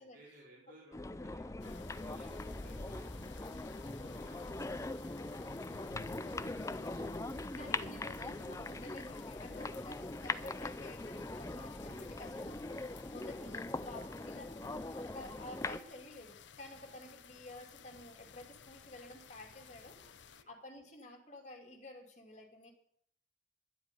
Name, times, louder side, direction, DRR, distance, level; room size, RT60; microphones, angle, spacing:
voice 1, 0.0-1.5 2.0-3.5 3.9-6.7 7.3-7.8 9.5-10.3 13.0-13.2 19.9-20.5, right 1 dB, 90° right, -7 dB, 4.7 m, -61 dB
sound 1, 0.9-15.8, left 2 dB, 15° left, 0.5 m, -41 dB
sound 2, 1.6-20.4, left 5 dB, 75° left, 0.8 m, -55 dB
voice 2, 1.6-2.0 6.8-9.9 10.2-20.0 20.5-22.7, left 1 dB, 40° left, 2 dB, 2.8 m, -52 dB
11.5 x 8.0 x 9.1 m, 0.68 s
head